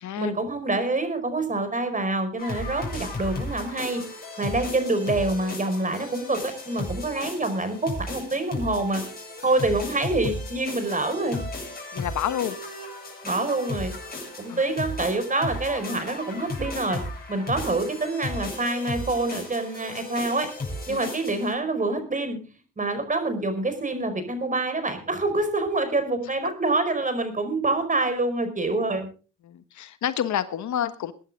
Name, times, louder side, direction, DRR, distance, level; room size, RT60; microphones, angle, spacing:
voice 1, 0.1-4.0 4.4-9.0 9.4-11.4 13.2-13.9 14.4-17.0 17.3-20.5 20.9-22.4 22.8-29.1, right 2 dB, 25° right, 5.0 m, -26 dB
sound 1, 2.4-21.5, left 2 dB, 30° left, 8.0 m, -35 dB
voice 2, 11.9-12.6 14.5-14.6 20.9-21.0 29.4-31.1, left 10 dB, 70° left, 1.3 m, -29 dB
22.5 x 11.0 x 3.6 m
cardioid pair, 90°, 30 cm